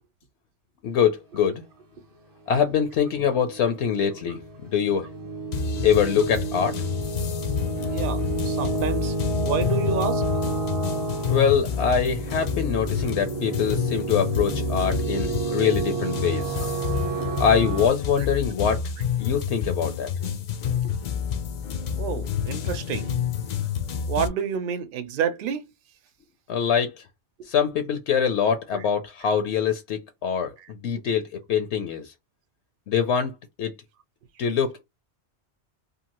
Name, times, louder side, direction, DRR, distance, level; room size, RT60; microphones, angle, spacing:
voice 1, 0.8-1.7 2.5-5.1 5.8-6.8 11.3-16.6 17.4-18.8 19.2-20.1 26.5-27.0 27.4-32.1 32.9-33.7 34.4-34.8, left 7 dB, 75° left, 0.9 m, -24 dB
sound 1, 3.0-17.9, right 2 dB, 30° right, 0.4 m, -30 dB
sound 2, 5.5-24.3, left 7 dB, 60° left, 0.4 m, -29 dB
voice 2, 7.9-9.2 9.4-10.3 22.0-23.2 24.1-25.7, right 7 dB, 55° right, 0.7 m, -29 dB
2.7 x 2.4 x 2.9 m
omnidirectional pair, 1.2 m